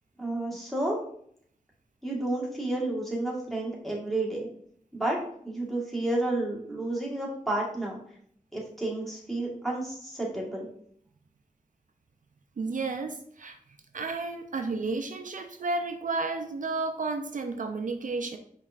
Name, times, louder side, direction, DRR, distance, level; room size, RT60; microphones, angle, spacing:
voice 1, 0.2-0.9 2.0-4.5 4.9-5.2 5.4-8.0 8.5-10.7, right 2 dB, ahead, -4 dB, 1.4 m, -31 dB
voice 2, 12.6-13.6 13.9-18.4, right 3 dB, 65° right, 5 dB, 0.4 m, -32 dB
4.9 x 3.2 x 2.4 m, 0.64 s
wide cardioid pair, 70°, 14 cm